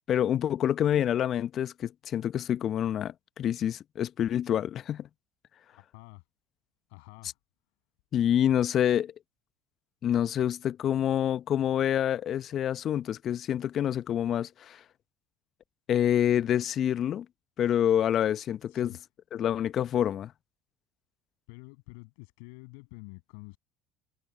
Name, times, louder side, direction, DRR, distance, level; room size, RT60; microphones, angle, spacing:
voice 1, 0.1-5.1 8.1-9.1 10.0-14.8 15.9-17.3 17.6-19.0 19.3-20.3, left 10 dB, 45° left, 0.9 m, -27 dB
voice 2, 5.7-6.2 6.9-7.4 18.7-19.0 21.5-23.6, left 35 dB, 70° left, 7.3 m, -48 dB
hypercardioid pair, 70°, 0 cm